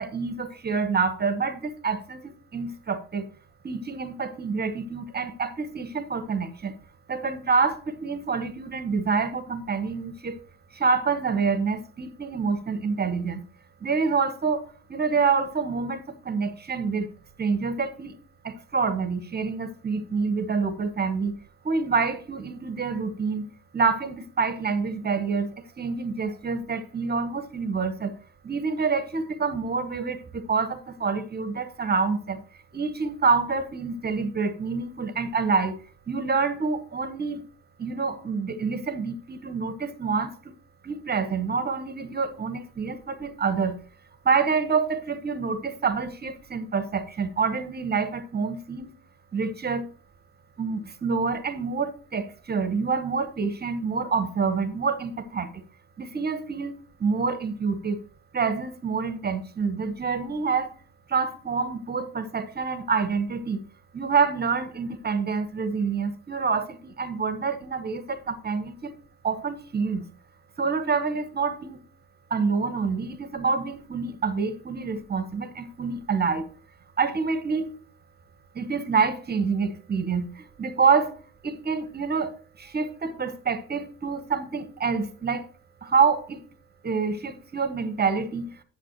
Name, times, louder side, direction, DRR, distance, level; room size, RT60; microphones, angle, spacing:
voice 1, 0.0-3.3 3.6-6.7 7.1-10.4 10.7-13.4 13.8-14.6 14.9-17.1 17.4-18.1 18.4-21.3 21.6-23.5 23.7-25.5 25.8-28.1 28.4-32.4 32.7-37.4 37.8-40.5 40.8-43.8 44.2-48.9 49.3-49.9 50.6-55.6 56.0-58.0 58.3-60.7 61.1-63.6 63.9-68.9 69.2-70.0 70.6-71.8 72.3-76.5 77.0-77.8 78.5-81.2 81.4-85.5 85.8-86.4 86.8-88.5, right 5 dB, 20° right, 1.2 m, -27 dB
10.5 x 8.4 x 3.0 m
hypercardioid pair, 70°, 44 cm